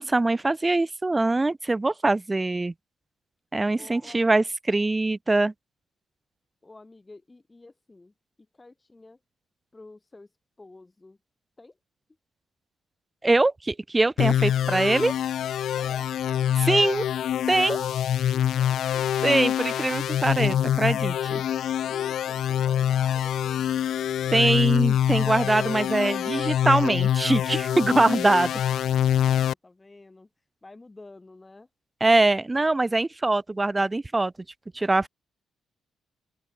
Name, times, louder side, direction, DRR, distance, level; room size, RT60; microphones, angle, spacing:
voice 1, 0.0-2.7 3.5-5.5 13.2-15.1 16.6-17.0 17.5-17.9 19.2-21.4 24.3-28.5 32.0-34.3 34.7-35.1, right 2 dB, 15° right, 0.7 m, -23 dB
voice 2, 3.8-4.3 6.6-8.1 8.5-9.2 9.7-10.3 10.6-11.2 11.6-11.8 15.8-16.1 18.3-19.1 19.7-19.9 21.9-23.6 28.3-30.3 30.6-31.7, left 2 dB, 15° left, 6.1 m, -49 dB
sound 1, 14.2-29.5, left 10 dB, 60° left, 0.3 m, -25 dB
open air
cardioid pair, 170°, 0 cm